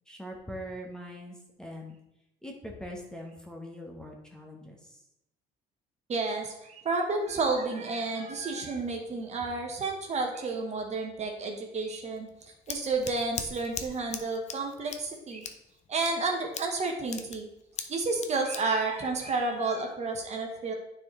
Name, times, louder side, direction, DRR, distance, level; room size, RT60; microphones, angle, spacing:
voice 1, 0.1-2.0 2.4-5.0, equal, 5° left, 0 dB, 1.1 m, -42 dB
voice 2, 6.1-12.3 12.7-15.5 15.9-17.5 17.9-20.7, right 3 dB, 40° right, 2 dB, 1.2 m, -31 dB
Scissors, 12.2-19.9, left 6 dB, 40° left, 0.7 m, -42 dB
9.3 x 4.4 x 3.2 m, 0.84 s
cardioid pair, 110°, 17 cm